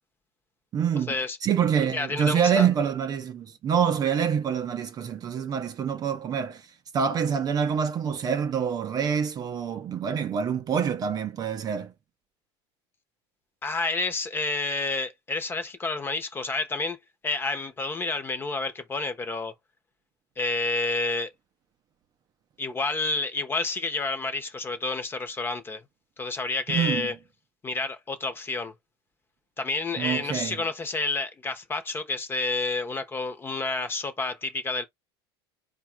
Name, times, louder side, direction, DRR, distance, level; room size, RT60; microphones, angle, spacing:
voice 1, 0.7-1.1 1.4-6.6 6.9-11.9 26.7-27.1 30.0-30.6, right 7 dB, 25° right, 0.6 m, -26 dB
voice 2, 1.9-2.7 13.6-17.0 17.2-19.5 20.4-21.3 22.6-25.8 26.2-27.1 27.6-28.7 29.6-34.8, left 3 dB, 15° left, 0.9 m, -29 dB
4.6 x 2.4 x 4.4 m
supercardioid pair, 150°, 14 cm